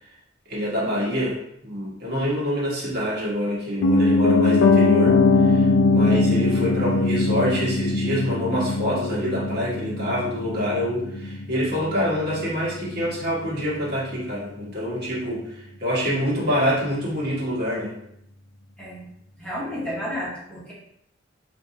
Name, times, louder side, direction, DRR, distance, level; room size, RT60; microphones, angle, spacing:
voice 1, 0.5-17.9, equal, 55° right, -6 dB, 1.7 m, -26 dB
Piano, 3.8-13.8 14.1-14.2, left 3 dB, 65° left, 0.4 m, -21 dB
voice 2, 19.4-20.7, equal, 5° left, -8 dB, 1.3 m, -31 dB
4.6 x 3.4 x 2.8 m, 0.75 s
head